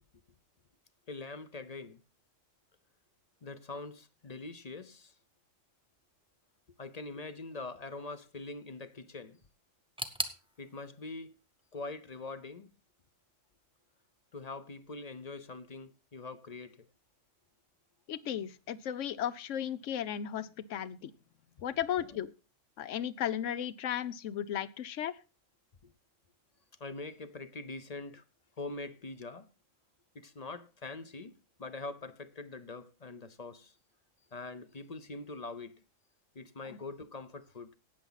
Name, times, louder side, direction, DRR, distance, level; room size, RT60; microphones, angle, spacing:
voice 1, 1.1-2.0 3.4-5.1 6.8-9.4 10.6-11.4 11.7-12.7 14.3-16.9 22.0-22.2 25.8-25.9 26.8-28.2 28.6-29.5 30.1-31.3 31.6-33.8 34.3-35.8 36.3-37.7, left 3 dB, 35° left, 0.8 m, -43 dB
sound 1, 10.0-12.8 13.1-13.9 14.2-14.3 15.2-15.3, right 1 dB, 5° right, 1.0 m, -42 dB
voice 2, 18.1-21.1 21.6-22.3 22.8-25.1 36.7-36.8, left 10 dB, 70° left, 1.1 m, -35 dB
17.5 x 7.1 x 4.0 m
omnidirectional pair, 1.4 m